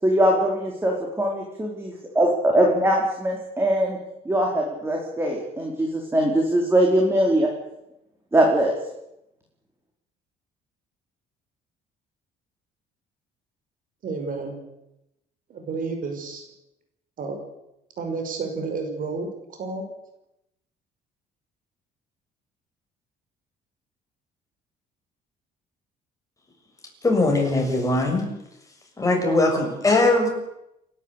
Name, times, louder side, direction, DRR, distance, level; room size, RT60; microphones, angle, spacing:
voice 1, 0.0-4.0 4.2-7.5 8.3-8.7, right 1 dB, 15° right, 0 dB, 4.5 m, -21 dB
voice 2, 14.0-14.5 15.5-16.5 17.2-17.4 18.0-19.9, right 4 dB, 55° right, 5 dB, 5.5 m, -31 dB
voice 3, 27.0-28.3 29.0-30.3, left 2 dB, 20° left, 1 dB, 7.1 m, -20 dB
29.0 x 12.0 x 8.4 m, 0.86 s
cardioid pair, 110°, 17 cm